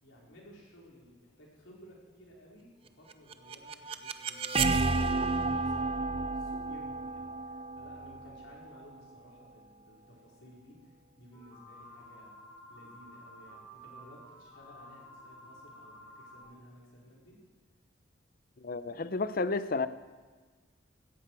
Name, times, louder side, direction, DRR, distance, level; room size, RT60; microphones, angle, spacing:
voice 1, 0.0-17.4, equal, 85° left, -3 dB, 4.6 m, -56 dB
sound 1, 3.1-9.0, right 3 dB, 30° right, 0.5 m, -32 dB
sound 2, 11.3-16.4, equal, 15° left, 4.7 m, -52 dB
voice 2, 18.6-19.9, left 3 dB, 50° left, 13 dB, 0.6 m, -31 dB
16.5 x 14.0 x 4.8 m, 1.4 s
head